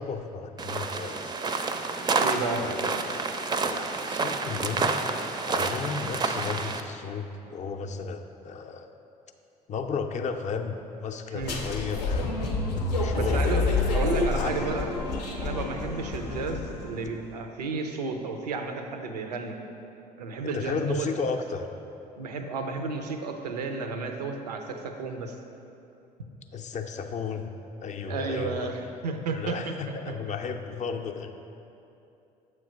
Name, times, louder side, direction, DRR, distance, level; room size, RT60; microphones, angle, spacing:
voice 1, 0.0-1.3 2.6-3.2 3.6-4.9 5.5-8.9 9.7-12.4 13.0-14.0 14.3-14.7 20.5-21.7 26.5-27.5 27.8-28.7 29.3-31.3, left 5 dB, 35° left, 6 dB, 0.5 m, -34 dB
sound 1, 0.6-6.8, right 4 dB, 20° right, 0.4 m, -29 dB
voice 2, 2.2-2.7 11.3-11.6 13.2-14.9 15.4-19.6 20.2-21.1 22.2-25.4 28.1-30.0, right 4 dB, 90° right, 5 dB, 0.4 m, -32 dB
sound 2, 11.4-17.0, left 3 dB, 90° left, 0.6 m, -28 dB
7.2 x 3.2 x 5.0 m, 2.8 s
hypercardioid pair, 55°, 20 cm